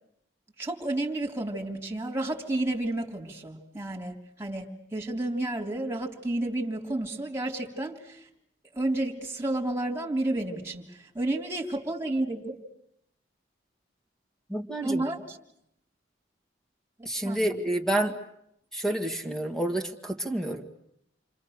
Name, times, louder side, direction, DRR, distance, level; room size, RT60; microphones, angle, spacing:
voice 1, 0.6-8.2 8.7-10.9 11.2-12.6 14.8-15.4 17.0-17.5, right 2 dB, 15° right, 0 dB, 3.4 m, -31 dB
voice 2, 14.5-15.0 17.1-18.2 18.7-20.7, right 1 dB, 5° left, 4 dB, 2.1 m, -29 dB
30.0 x 25.0 x 6.7 m, 0.75 s
head